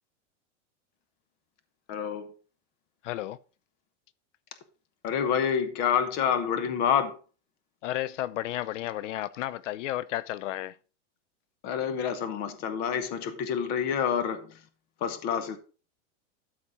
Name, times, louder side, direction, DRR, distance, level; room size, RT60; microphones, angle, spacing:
voice 1, 1.9-2.3 5.0-7.2 11.6-14.6 15.0-15.6, left 7 dB, 25° left, 0.9 m, -28 dB
voice 2, 3.0-3.4 7.8-10.8, left 14 dB, 80° left, 0.6 m, -32 dB
12.0 x 4.3 x 4.9 m
supercardioid pair, 180°, 36 cm